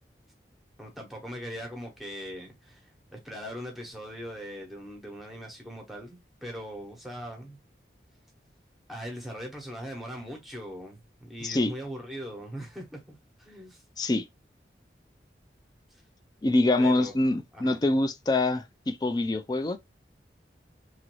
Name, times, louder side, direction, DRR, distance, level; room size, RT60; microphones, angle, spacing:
voice 1, 0.8-7.6 8.9-13.8 15.9-16.0 16.8-17.1 17.5-17.8, equal, ahead, 0.9 m, -40 dB
voice 2, 11.4-11.7 14.0-14.2 16.4-19.8, left 2 dB, 20° left, 0.3 m, -25 dB
3.0 x 2.5 x 2.9 m
head